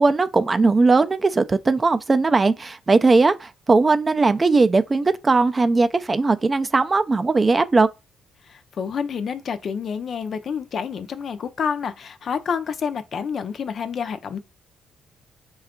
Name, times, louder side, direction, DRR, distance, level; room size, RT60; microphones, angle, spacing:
voice 1, 0.0-7.9, right 3 dB, 30° right, 0.3 m, -18 dB
voice 2, 8.4-14.4, left 6 dB, 55° left, 0.4 m, -28 dB
4.3 x 2.3 x 3.6 m
cardioid pair, 90°, 0 cm